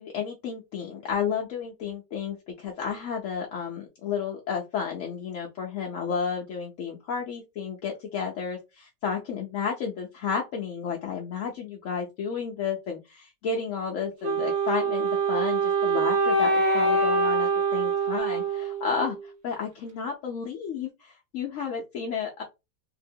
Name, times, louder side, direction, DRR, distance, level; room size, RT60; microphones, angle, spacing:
voice 1, 0.0-22.4, left 6 dB, 65° left, 0 dB, 0.8 m, -32 dB
Wind instrument woodwind instrument, 14.2-19.3, right 3 dB, 60° right, 0.7 m, -24 dB
2.8 x 2.7 x 2.7 m, 0.24 s
omnidirectional pair, 1.8 m